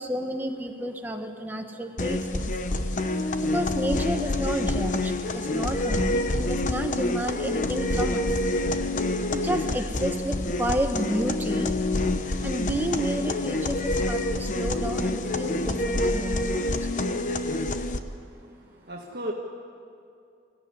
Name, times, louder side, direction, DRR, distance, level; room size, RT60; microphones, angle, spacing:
voice 1, 0.0-2.6 3.4-8.4 9.3-11.7 12.4-16.9, equal, 10° right, 3 dB, 1.5 m, -31 dB
sound 1, 2.0-18.0, left 2 dB, 45° left, 1.0 m, -27 dB
voice 2, 17.8-19.3, right 1 dB, 60° right, -2 dB, 1.7 m, -38 dB
23.5 x 15.5 x 9.7 m, 2.4 s
head